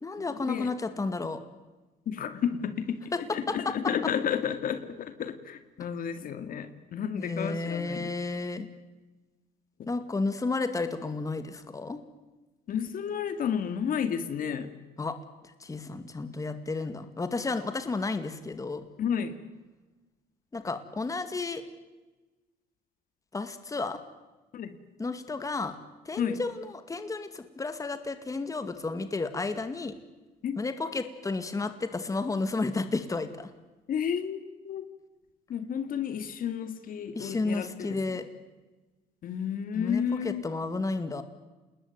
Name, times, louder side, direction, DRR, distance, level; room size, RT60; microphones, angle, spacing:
voice 1, 0.0-1.4 3.1-3.2 3.5-3.7 7.2-8.7 9.9-12.0 15.0-15.2 15.6-18.8 20.5-21.6 23.3-24.0 25.0-25.8 26.1-30.0 30.6-33.5 37.2-38.2 39.7-41.2, left 3 dB, 20° left, 9 dB, 2.3 m, -32 dB
voice 2, 2.1-8.1 12.7-14.7 19.0-19.4 24.5-24.7 26.2-26.4 30.4-30.6 33.9-34.9 35.5-38.2 39.2-40.4, left 8 dB, 55° left, 10 dB, 2.3 m, -32 dB
28.0 x 20.5 x 9.5 m, 1.2 s
cardioid pair, 110°, 17 cm